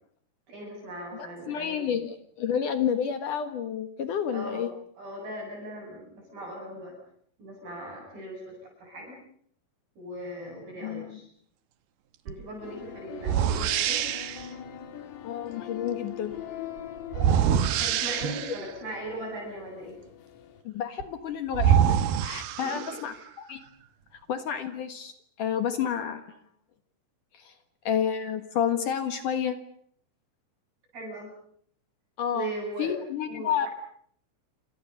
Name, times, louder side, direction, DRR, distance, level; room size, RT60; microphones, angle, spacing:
voice 1, 0.5-1.8 4.3-4.7 5.0-6.9 7.4-9.2 10.0-11.3 12.3-14.0 17.3-19.9 22.6-22.7 30.9-31.3 32.3-32.9 33.3-33.7, right 1 dB, 45° right, -1 dB, 9.7 m, -39 dB
voice 2, 1.1-4.7 10.8-11.2 15.2-16.4 20.6-23.6 24.3-26.2 27.3-27.5 27.8-29.6 32.2-32.5 32.8-33.7, left 8 dB, 65° left, 9 dB, 2.0 m, -30 dB
sound 1, 12.3-12.4 13.2-14.5 17.1-18.7 21.0-21.1 21.5-23.2, right 9 dB, 75° right, 2.3 m, -25 dB
sound 2, 12.6-20.6, left 10 dB, 80° left, 5.0 m, -42 dB
28.5 x 27.0 x 6.7 m, 0.64 s
omnidirectional pair, 6.0 m